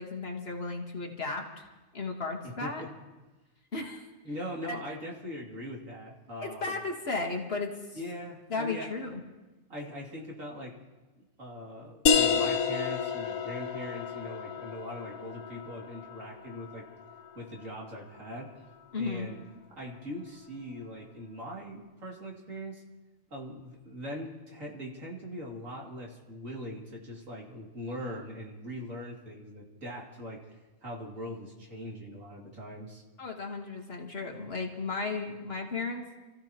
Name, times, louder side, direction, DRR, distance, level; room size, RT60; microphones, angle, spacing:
voice 1, 0.0-1.6 1.9-2.8 3.7-4.1 4.7-4.8 6.4-8.0 8.5-9.2 18.9-19.3 33.2-36.1, left 3 dB, 45° left, 1 dB, 1.7 m, -34 dB
voice 2, 4.2-6.8 7.9-8.9 9.7-10.7 11.2-16.8 17.3-18.5 19.0-19.4 19.8-22.8 23.3-33.0, equal, 70° right, -2 dB, 3.0 m, -41 dB
sound 1, 12.1-17.4, left 6 dB, 90° left, 1.4 m, -30 dB
28.5 x 15.0 x 2.9 m, 1.2 s
omnidirectional pair, 1.4 m